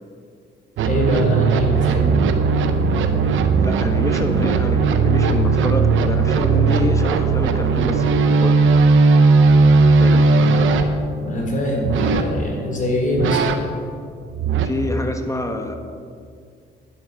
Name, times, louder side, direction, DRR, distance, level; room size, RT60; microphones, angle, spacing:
voice 1, 0.8-2.2 11.2-13.5, left 1 dB, 40° left, 0 dB, 3.8 m, -23 dB
sound 1, 0.8-10.8 11.8-12.3 13.1-13.6 14.3-14.7, right 4 dB, 80° right, 1.0 m, -17 dB
voice 2, 3.6-8.7 10.0-10.3 14.6-15.8, left 1 dB, 15° left, 5 dB, 1.4 m, -26 dB
11.5 x 11.0 x 5.5 m, 2.3 s
cardioid pair, 90°, 20 cm